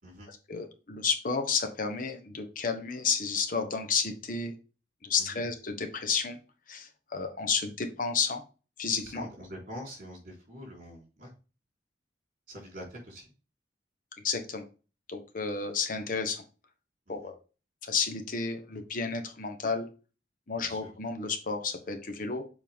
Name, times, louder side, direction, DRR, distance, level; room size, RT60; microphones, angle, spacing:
voice 1, 0.5-4.5 5.0-6.4 6.7-8.4 8.8-9.3 14.2-14.6 15.1-16.4 17.1-17.4 17.8-19.9 20.5-22.4, left 5 dB, 50° left, 6 dB, 1.1 m, -31 dB
voice 2, 9.0-11.3 12.5-13.3 17.1-17.3 20.6-20.9, equal, 50° right, -1 dB, 3.9 m, -45 dB
7.0 x 4.6 x 3.6 m, 0.33 s
head